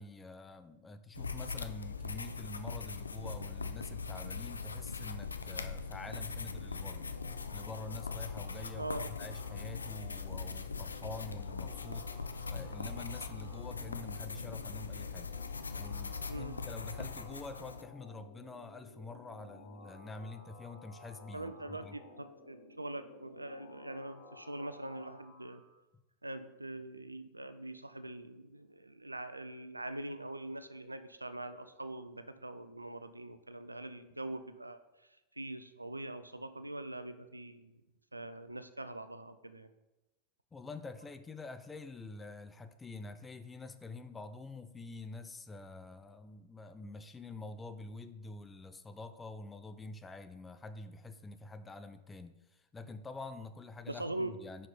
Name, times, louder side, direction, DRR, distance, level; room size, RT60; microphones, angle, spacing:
voice 1, 0.0-7.1 7.5-15.3 15.8-22.0 40.5-54.7, left 3 dB, 15° left, 10 dB, 0.4 m, -47 dB
sound 1, 1.1-17.8, left 5 dB, 75° left, 0.3 m, -41 dB
sound 2, 5.8-25.7, left 3 dB, 55° left, 1.3 m, -55 dB
voice 2, 8.8-9.1 16.3-16.6 21.3-25.6 26.2-34.8 35.4-37.8 38.1-39.7 53.9-54.4, right 1 dB, 85° right, 12 dB, 0.4 m, -43 dB
5.5 x 4.6 x 5.0 m, 1.0 s
figure-of-eight pair, 90°, 0 cm